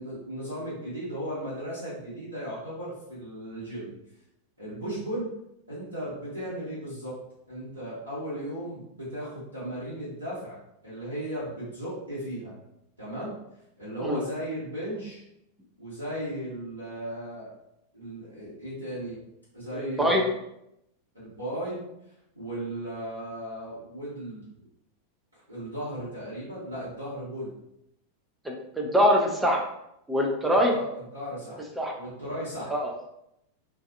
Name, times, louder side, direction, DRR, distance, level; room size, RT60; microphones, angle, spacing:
voice 1, 0.0-3.9 4.6-5.3 5.7-7.2 7.5-10.6 10.8-12.5 13.0-13.4 13.8-15.2 15.8-17.5 17.9-19.2 19.5-20.3 21.1-21.8 22.3-24.4 25.5-27.5 30.5-31.6 31.9-32.7, right 1 dB, 85° right, -11 dB, 1.0 m, -36 dB
voice 2, 19.7-20.2 28.5-29.6 30.1-30.7 31.8-31.9 32.7-32.9, equal, 5° right, 0 dB, 0.4 m, -23 dB
2.5 x 2.3 x 2.5 m, 0.82 s
figure-of-eight pair, 90°, 0 cm